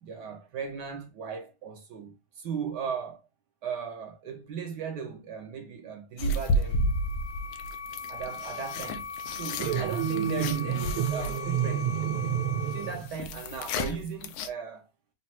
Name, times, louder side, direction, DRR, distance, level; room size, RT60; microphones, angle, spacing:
voice 1, 0.0-3.2 3.6-6.8 8.1-9.1 9.3-11.9 12.6-14.9, right 6 dB, 65° right, 1.2 m, -37 dB
sound 1, 6.2-14.5, left 1 dB, 85° left, 1.5 m, -32 dB
sound 2, 6.5-12.9, left 5 dB, 65° left, 1.0 m, -40 dB
sound 3, 9.6-13.1, right 10 dB, 90° right, 1.6 m, -29 dB
4.1 x 2.2 x 4.1 m
omnidirectional pair, 2.3 m